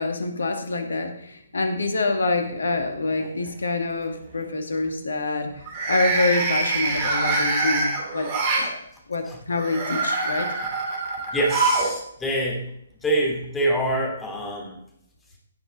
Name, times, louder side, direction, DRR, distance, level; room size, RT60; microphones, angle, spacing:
voice 1, 0.0-5.6 5.9-8.7 9.1-10.5, left 3 dB, 65° left, 6 dB, 1.9 m, -26 dB
sound 1, 2.1-2.7 3.1-3.5 5.6-8.7 9.5-11.9 12.2-12.3 13.4-13.5, right 3 dB, 35° right, 2.8 m, -25 dB
voice 2, 11.3-12.6 13.0-14.8, right 1 dB, 10° left, -1 dB, 2.8 m, -25 dB
16.0 x 6.8 x 4.0 m, 0.74 s
figure-of-eight pair, 130°, 0 cm